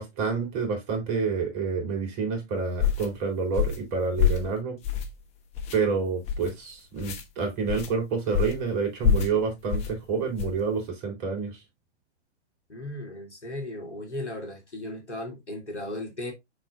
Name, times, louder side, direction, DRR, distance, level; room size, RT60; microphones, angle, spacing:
voice 1, 0.0-4.8 5.7-11.6, right 5 dB, 35° right, 3.5 m, -28 dB
sound 1, 2.8-3.1 3.5-3.9 4.2-4.5 4.8-5.2 5.5-5.8 6.2-6.5 7.0-7.2 7.7-7.9 8.3-8.6 9.0-9.3 9.7-9.9 10.4-10.6, left 8 dB, 20° left, 1.0 m, -26 dB
voice 2, 12.7-16.3, left 1 dB, 75° left, 2.9 m, -36 dB
6.4 x 6.1 x 2.5 m
figure-of-eight pair, 120°, 35 cm